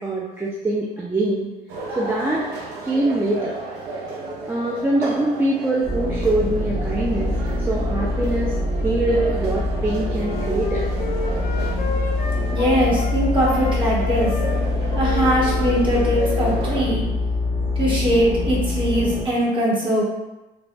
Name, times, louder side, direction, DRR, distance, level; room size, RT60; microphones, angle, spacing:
voice 1, 0.0-1.5 2.0-2.4 2.8-3.5 4.5-7.3 7.6-8.6 8.8-10.9, right 2 dB, 15° right, -5 dB, 0.3 m, -23 dB
sound 1, 1.7-16.8, right 2 dB, 80° right, 0.6 m, -34 dB
sound 2, 5.8-19.2, left 2 dB, 60° right, 1.2 m, -24 dB
Wind instrument woodwind instrument, 10.1-13.2 13.4-16.7, left 3 dB, 55° left, 0.4 m, -32 dB
voice 2, 12.5-14.3 14.9-17.0 17.8-20.0, equal, 30° right, -6 dB, 1.1 m, -21 dB
3.1 x 2.2 x 2.5 m, 1.0 s
cardioid pair, 110°, 17 cm